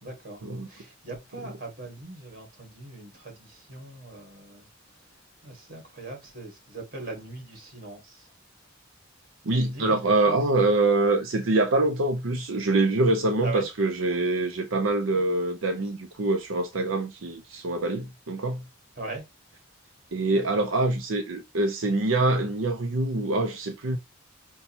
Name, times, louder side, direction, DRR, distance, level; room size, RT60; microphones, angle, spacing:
voice 1, 0.0-4.7 5.1-8.3 9.6-10.0 10.3-10.4 13.4-13.7 18.9-19.2 20.3-20.6, right 3 dB, 50° right, 2.1 m, -40 dB
voice 2, 9.5-18.6 20.1-24.0, right 2 dB, 85° right, 0.6 m, -25 dB
5.5 x 2.3 x 4.3 m
head